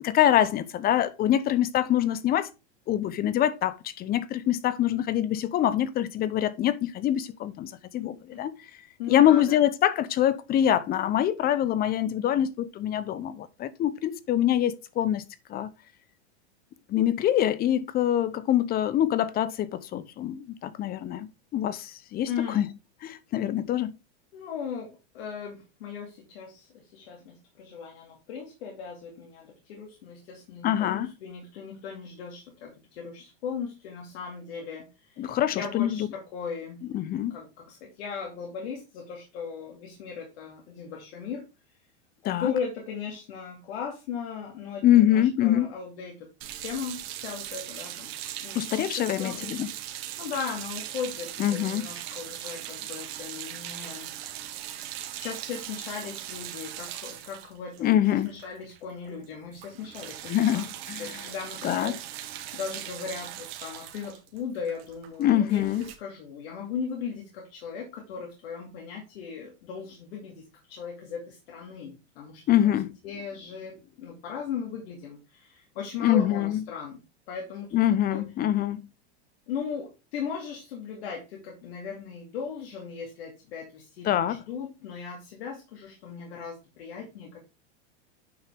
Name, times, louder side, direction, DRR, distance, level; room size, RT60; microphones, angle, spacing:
voice 1, 0.0-2.5 2.9-8.5 9.1-15.2 15.5-15.7 16.9-22.7 23.0-23.9 30.6-31.1 35.2-36.0 36.9-37.4 42.2-42.5 44.8-45.7 48.5-49.7 51.4-51.9 57.8-58.3 60.3-61.2 61.6-61.9 65.2-65.8 72.5-72.9 76.0-76.6 77.7-78.8 84.0-84.4, left 11 dB, 30° left, 0.7 m, -25 dB
voice 2, 7.9-8.4 9.0-9.6 22.3-22.6 24.3-36.8 37.1-41.4 42.2-46.3 46.6-48.1 48.4-49.5 50.2-54.1 55.2-60.6 61.0-72.7 73.0-78.3 79.5-87.4, left 6 dB, 70° left, 2.5 m, -37 dB
sound 1, 46.4-58.8 59.0-59.2 59.5-65.9, right 12 dB, 65° right, 2.0 m, -39 dB
9.3 x 5.7 x 3.5 m
supercardioid pair, 125°, 33 cm